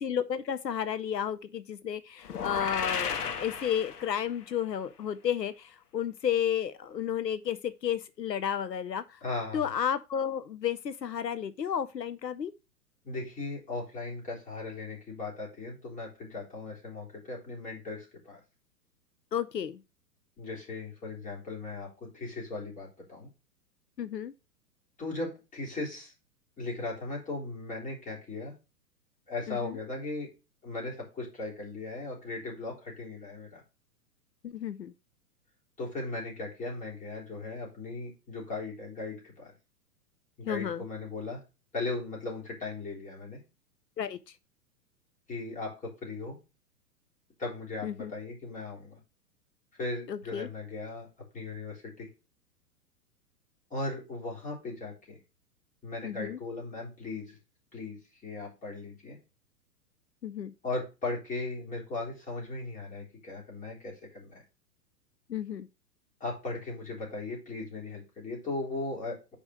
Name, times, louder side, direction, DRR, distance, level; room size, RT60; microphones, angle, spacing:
voice 1, 0.0-9.0 9.5-12.5 19.3-19.8 24.0-24.3 29.5-29.8 34.4-34.9 40.5-40.8 44.0-44.2 47.8-48.1 50.1-50.5 56.0-56.4 60.2-60.5 65.3-65.7, left 9 dB, 90° left, 0.7 m, -32 dB
sound 1, 2.2-4.4, left 6 dB, 70° left, 1.3 m, -34 dB
voice 2, 9.2-9.6 13.0-18.4 20.4-21.9 22.1-23.3 25.0-26.1 26.6-28.5 29.3-30.3 30.6-33.6 35.8-39.5 40.4-41.4 41.7-43.4 45.3-46.4 47.4-49.0 49.8-51.1 51.3-52.1 53.7-55.2 55.8-57.4 57.7-59.2 60.6-64.4 66.2-69.4, left 3 dB, 15° left, 3.7 m, -37 dB
5.2 x 5.1 x 6.3 m
figure-of-eight pair, 110°, 48 cm